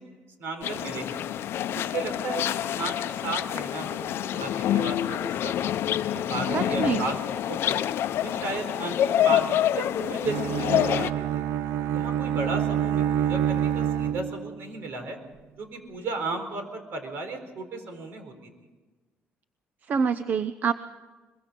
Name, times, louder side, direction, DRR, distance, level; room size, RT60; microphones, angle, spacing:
voice 1, 0.4-1.2 1.7-5.7 6.1-7.8 8.2-11.4 11.9-15.2 15.6-18.3, right 3 dB, 70° right, 7 dB, 4.2 m, -35 dB
sound 1, 0.6-11.1, left 11 dB, 70° left, 0.6 m, -27 dB
voice 2, 6.5-7.0 19.9-20.7, right 6 dB, 45° right, 12 dB, 0.7 m, -26 dB
Bowed string instrument, 10.2-14.7, right 9 dB, 85° right, 0.6 m, -27 dB
23.0 x 22.0 x 5.3 m, 1.3 s
cardioid pair, 135°, 4 cm